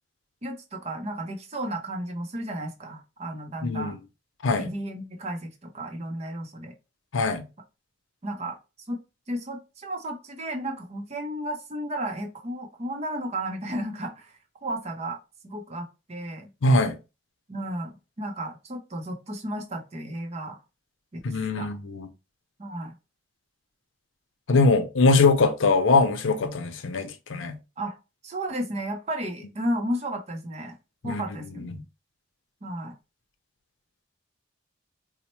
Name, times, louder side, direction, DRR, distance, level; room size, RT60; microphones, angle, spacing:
voice 1, 0.4-4.0 4.5-6.7 8.2-8.6 8.9-9.0 9.3-14.3 14.6-15.2 15.4-16.5 17.5-20.6 21.1-21.8 22.6-22.9 27.8-28.0 28.2-30.8 31.0-31.8 32.6-33.0, right 1 dB, 35° right, 0.6 m, -33 dB
voice 2, 3.6-4.0 4.4-4.7 7.1-7.4 16.6-17.0 21.2-22.1 24.5-27.6 31.0-31.2 31.6-31.8, left 3 dB, 85° left, 0.6 m, -22 dB
4.1 x 2.1 x 2.9 m
head